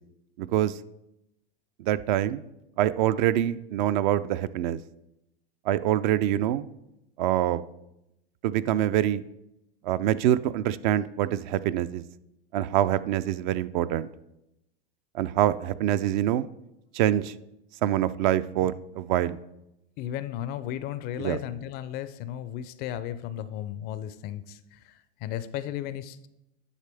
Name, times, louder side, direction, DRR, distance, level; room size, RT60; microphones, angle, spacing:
voice 1, 0.4-0.8 1.8-2.4 2.8-4.8 5.7-6.7 7.2-7.6 8.4-9.2 9.8-12.0 12.5-14.1 15.1-16.5 16.9-17.3 17.8-19.4 21.2-21.4, right 12 dB, 50° right, 15 dB, 0.4 m, -25 dB
voice 2, 20.0-26.3, left 11 dB, 35° left, 14 dB, 0.4 m, -35 dB
9.9 x 6.5 x 3.4 m, 0.86 s
hypercardioid pair, 120°, 30 cm